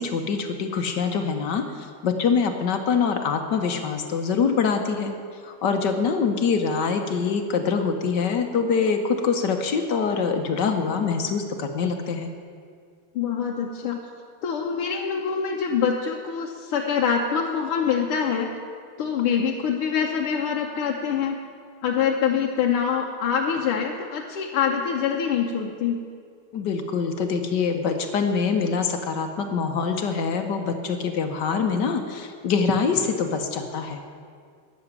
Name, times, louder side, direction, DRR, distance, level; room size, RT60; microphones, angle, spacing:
voice 1, 0.0-12.3 26.5-34.0, left 5 dB, 60° left, 6 dB, 1.4 m, -24 dB
voice 2, 13.2-14.0 14.4-18.5 19.0-21.4 21.8-26.0, left 7 dB, 85° left, -1 dB, 1.8 m, -25 dB
13.0 x 7.0 x 9.7 m, 2.1 s
omnidirectional pair, 2.4 m